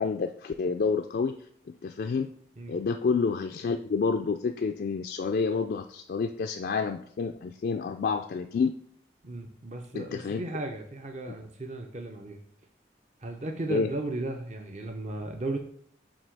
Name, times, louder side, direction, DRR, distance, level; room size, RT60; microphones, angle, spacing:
voice 1, 0.0-1.4 1.8-2.3 2.7-8.8 9.9-10.4 13.7-13.9, left 5 dB, 55° left, 5 dB, 0.3 m, -29 dB
voice 2, 9.2-12.4 13.2-15.6, right 2 dB, 40° right, 3 dB, 0.6 m, -35 dB
7.5 x 2.8 x 4.5 m, 0.65 s
head